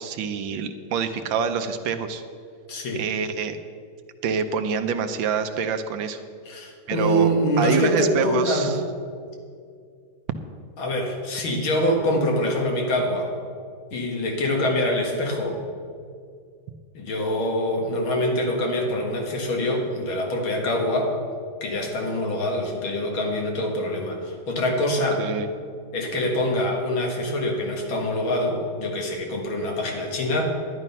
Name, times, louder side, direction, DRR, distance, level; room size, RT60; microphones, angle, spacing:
voice 1, 0.0-2.2 2.9-3.6 4.2-6.2 6.9-7.3 7.6-8.8 25.2-25.5, right 6 dB, 75° right, 9 dB, 1.4 m, -26 dB
voice 2, 2.7-3.1 6.5-8.8 10.8-13.3 13.9-15.6 16.9-21.1 21.6-25.2 25.9-30.5, left 1 dB, 80° left, 1 dB, 2.5 m, -25 dB
11.0 x 11.0 x 5.5 m, 2.2 s
omnidirectional pair, 2.2 m